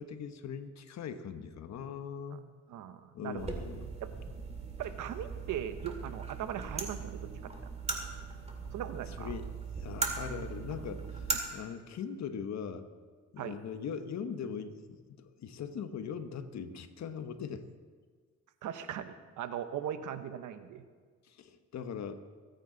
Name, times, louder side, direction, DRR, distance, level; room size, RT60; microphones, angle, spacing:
voice 1, 0.0-2.4 3.1-3.9 9.1-9.5 9.8-11.2 11.5-12.9 13.3-17.7 21.2-22.2, left 7 dB, 65° left, 9 dB, 1.1 m, -40 dB
voice 2, 2.7-3.5 4.0-4.1 4.8-7.5 8.7-9.3 13.4-13.6 18.6-20.8, right 10 dB, 80° right, 10 dB, 1.0 m, -39 dB
sound 1, 3.4-11.4, right 4 dB, 20° right, 2.1 m, -39 dB
22.5 x 9.2 x 4.0 m, 1.5 s
cardioid pair, 90°, 30 cm